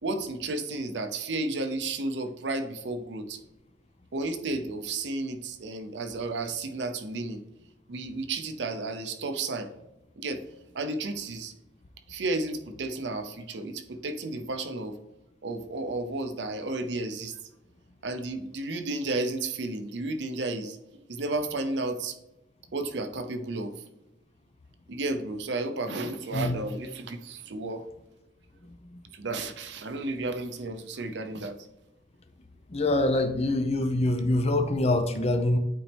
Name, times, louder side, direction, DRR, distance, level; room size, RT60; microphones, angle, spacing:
voice 1, 0.0-3.4 4.1-7.4 7.9-9.7 10.2-10.4 10.7-11.5 12.1-14.9 15.4-17.4 18.0-20.8 21.1-22.2 22.7-23.7 24.9-27.8 29.1-31.6, right 2 dB, 70° right, 0.6 m, -32 dB
voice 2, 28.7-29.0 32.7-35.6, left 2 dB, 35° left, 0.6 m, -25 dB
8.7 x 4.2 x 3.4 m
head